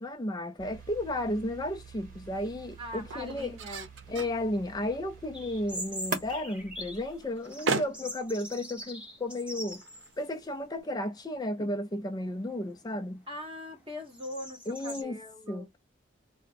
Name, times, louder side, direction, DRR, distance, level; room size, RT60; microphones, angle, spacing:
voice 1, 0.0-3.5 4.1-9.8 10.2-13.2 14.7-15.2 15.5-15.8, left 1 dB, 20° left, 0.4 m, -33 dB
sound 1, 0.6-7.6, right 3 dB, 45° right, 1.4 m, -44 dB
sound 2, 0.7-11.1, right 4 dB, 80° right, 0.7 m, -41 dB
voice 2, 2.8-3.9 13.3-15.7, left 1 dB, 30° right, 1.8 m, -41 dB
sound 3, 5.3-7.1 7.4-10.1 10.5-10.6 11.3-11.7 12.2-15.0, equal, 5° right, 1.2 m, -43 dB
4.1 x 2.1 x 4.1 m
head